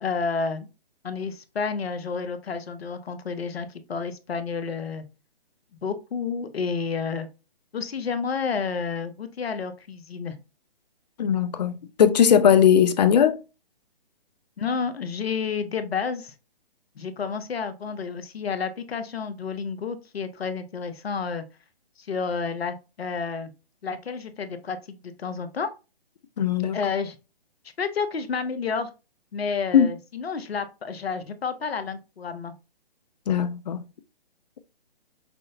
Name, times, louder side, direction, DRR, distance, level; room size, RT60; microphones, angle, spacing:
voice 1, 0.0-0.7 1.0-5.0 5.8-7.3 7.7-10.4 14.6-16.3 17.0-21.4 22.0-23.5 23.8-25.7 26.7-27.2 27.8-28.9 29.3-32.5, left 5 dB, 75° left, 0.8 m, -30 dB
voice 2, 11.2-13.4 26.4-26.8 29.7-29.9 33.3-33.8, left 8 dB, 45° left, 0.5 m, -19 dB
6.0 x 2.1 x 2.5 m
hypercardioid pair, 145°, 31 cm